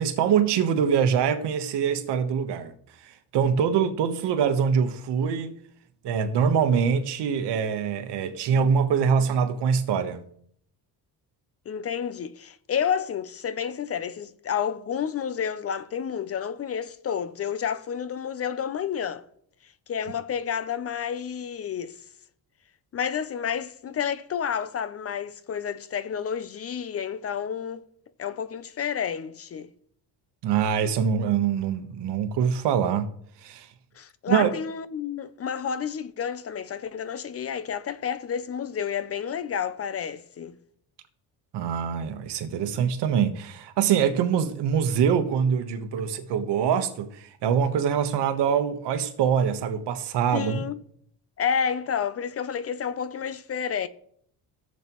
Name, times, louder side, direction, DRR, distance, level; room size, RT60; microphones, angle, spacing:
voice 1, 0.0-2.7 3.0-5.6 6.0-10.2 30.4-33.1 33.4-33.7 34.3-34.5 41.5-50.6, right 7 dB, 80° right, 1.2 m, -24 dB
voice 2, 11.7-19.2 19.6-22.0 22.9-27.8 28.2-29.7 33.9-40.6 50.3-50.8 51.4-53.9, left 7 dB, 35° left, 0.5 m, -30 dB
16.0 x 7.4 x 3.0 m
cardioid pair, 140°, 41 cm